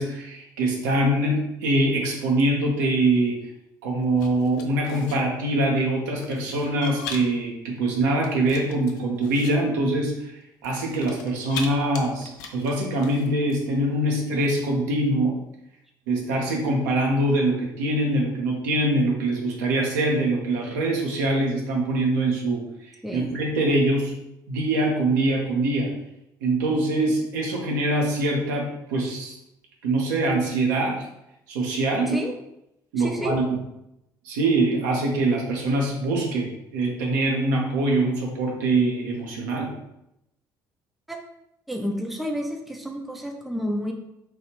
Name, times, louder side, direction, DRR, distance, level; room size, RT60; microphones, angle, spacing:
voice 1, 0.0-3.4 3.8-15.3 16.1-22.6 23.1-24.1 24.5-25.9 26.4-29.3 29.8-31.0 31.5-32.2 32.9-33.6 34.2-39.7, right 2 dB, 70° right, 0 dB, 0.6 m, -23 dB
sound 1, 4.1-5.2 6.2-7.4 8.1-9.5 10.6-11.7 11.9-13.6, left 5 dB, 65° left, 0.4 m, -38 dB
voice 2, 23.0-23.3 32.1-32.3 33.0-33.4 41.1-41.2 41.7-43.9, equal, ahead, 2 dB, 0.4 m, -30 dB
3.1 x 2.3 x 3.0 m, 0.83 s
figure-of-eight pair, 50°, 10 cm